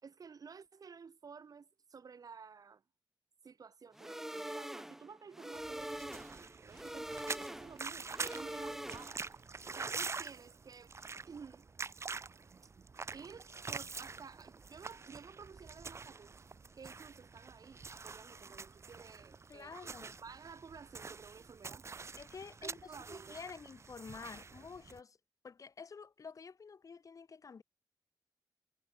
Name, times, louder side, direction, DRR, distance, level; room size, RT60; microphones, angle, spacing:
voice 1, 0.0-2.8 3.4-9.2 9.7-10.9 11.3-11.6 12.5-16.3 16.8-21.8 22.6-23.4, right 5 dB, 55° right, 3.1 m, -53 dB
sound 1, 3.9-9.3, right 1 dB, 5° right, 0.7 m, -44 dB
sound 2, 5.5-25.0, right 4 dB, 40° right, 1.3 m, -46 dB
voice 2, 19.5-20.2 22.2-22.8 23.1-25.2 25.4-27.6, left 5 dB, 45° left, 1.5 m, -49 dB
wide cardioid pair, 130°, 8 cm